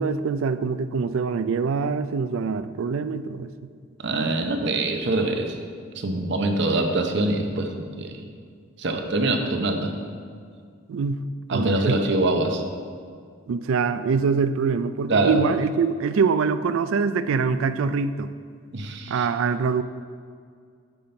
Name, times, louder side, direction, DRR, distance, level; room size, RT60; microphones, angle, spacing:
voice 1, 0.0-3.5 10.9-11.2 11.5-12.0 13.5-18.3 19.1-19.8, right 5 dB, 70° right, 12 dB, 0.3 m, -24 dB
voice 2, 4.0-5.6 6.0-8.2 8.8-10.0 11.5-12.6 15.1-15.4 18.7-19.3, right 2 dB, 55° right, 5 dB, 0.7 m, -24 dB
9.1 x 5.6 x 4.3 m, 2.1 s
head